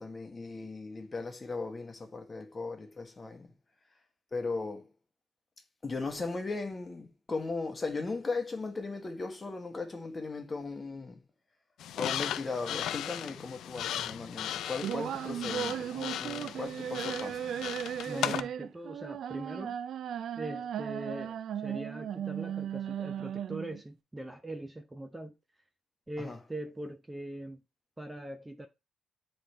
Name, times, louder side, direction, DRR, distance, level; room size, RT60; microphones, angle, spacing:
voice 1, 0.0-3.5 4.3-4.9 5.8-11.2 12.0-17.5 26.2-26.4, left 3 dB, 30° left, 1.3 m, -37 dB
sound 1, 11.8-18.4, left 11 dB, 80° left, 0.3 m, -37 dB
sound 2, 14.8-23.8, right 9 dB, 70° right, 0.3 m, -36 dB
voice 2, 18.1-19.8 20.4-25.4 26.1-27.6 28.0-28.7, right 1 dB, 15° right, 0.7 m, -41 dB
7.5 x 3.4 x 4.3 m
cardioid pair, 90°, 0 cm